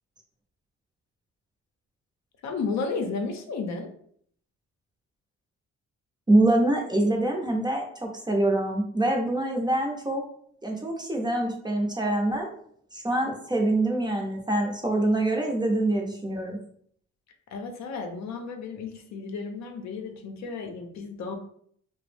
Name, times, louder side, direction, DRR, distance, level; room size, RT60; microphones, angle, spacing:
voice 1, 2.4-3.9 17.5-21.4, left 4 dB, 65° left, 4 dB, 0.6 m, -33 dB
voice 2, 6.3-10.2 10.6-12.5 12.9-16.6, right 1 dB, 15° right, 1 dB, 0.5 m, -25 dB
2.5 x 2.0 x 3.2 m, 0.62 s
cardioid pair, 90°, 30 cm